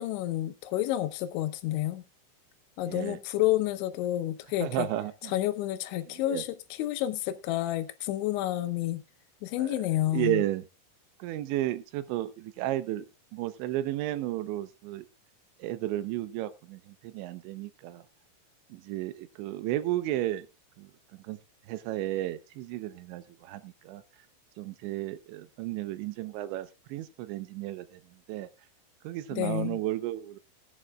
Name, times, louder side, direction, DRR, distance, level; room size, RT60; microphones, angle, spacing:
voice 1, 0.0-2.0 2.8-4.9 5.3-6.5 6.8-9.0 9.4-10.4 29.3-29.8, left 14 dB, 85° left, 3.2 m, -29 dB
voice 2, 2.8-3.2 4.6-5.4 6.2-6.4 9.6-9.8 10.1-10.6 11.2-13.1 13.3-15.1 15.6-18.1 18.7-20.5 20.8-21.4 21.7-24.0 24.6-28.0 28.3-28.5 29.0-30.4, right 14 dB, 80° right, 3.1 m, -33 dB
19.5 x 11.0 x 2.3 m
omnidirectional pair, 5.3 m